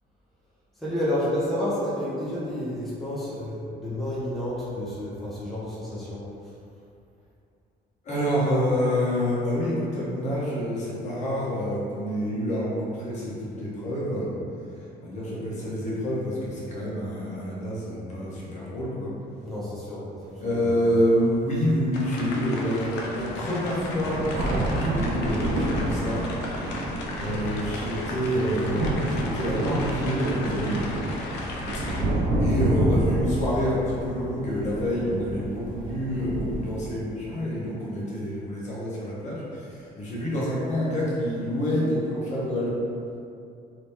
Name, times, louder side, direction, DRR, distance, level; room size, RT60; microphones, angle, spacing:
voice 1, 0.8-6.2 19.4-20.7, left 1 dB, ahead, -9 dB, 0.8 m, -30 dB
voice 2, 8.0-14.3 15.0-19.1 20.4-26.2 26.6-30.8 31.9-42.7, equal, 45° left, -7 dB, 1.1 m, -27 dB
sound 1, 20.3-20.4 21.1-21.2 22.4-22.5 22.9-36.9, right 2 dB, 50° right, 0.5 m, -29 dB
sound 2, 21.9-32.0, left 2 dB, 90° left, 0.5 m, -36 dB
3.0 x 2.8 x 3.5 m, 2.5 s
cardioid pair, 110°, 17 cm